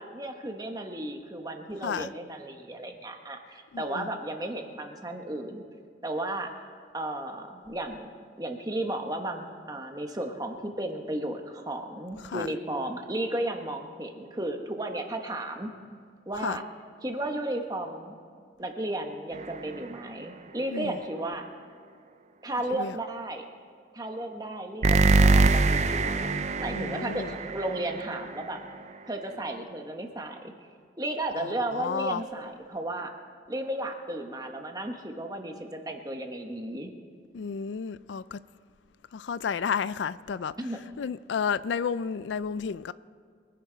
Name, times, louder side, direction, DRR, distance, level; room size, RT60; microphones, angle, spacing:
voice 1, 0.0-5.6 6.0-6.5 6.9-8.1 8.4-15.7 16.3-16.6 17.0-18.1 18.6-21.5 22.4-23.4 23.9-26.3 26.6-28.6 29.1-30.5 31.0-33.1 33.5-36.9 40.6-40.8, right 1 dB, 20° right, 1.2 m, -34 dB
voice 2, 3.7-4.1 12.2-12.5 16.4-16.6 20.7-21.0 22.7-23.0 26.7-27.4 31.4-32.2 37.3-38.4 39.1-40.5 41.0-42.9, left 6 dB, 80° left, 0.4 m, -32 dB
sound 1, 19.3-20.0 24.8-28.5, right 3 dB, 40° right, 0.5 m, -24 dB
23.5 x 11.0 x 3.9 m
head